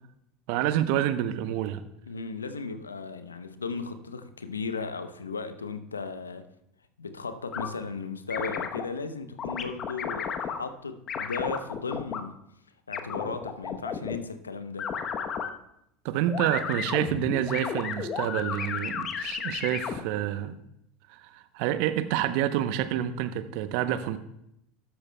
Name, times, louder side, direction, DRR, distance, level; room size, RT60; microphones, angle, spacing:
voice 1, 0.5-1.8 16.0-20.6 21.1-24.2, right 11 dB, 60° right, 12 dB, 0.7 m, -28 dB
voice 2, 2.1-6.5 7.0-12.4 12.9-14.9, left 4 dB, 90° left, 10 dB, 0.7 m, -36 dB
sound 1, 7.5-7.7 8.3-8.8 9.4-10.6 11.1-12.2 12.9-14.2 14.8-15.5 16.3-20.0, left 7 dB, 40° left, 0.9 m, -33 dB
13.0 x 11.5 x 2.2 m, 0.78 s
hypercardioid pair, 75°, 0 cm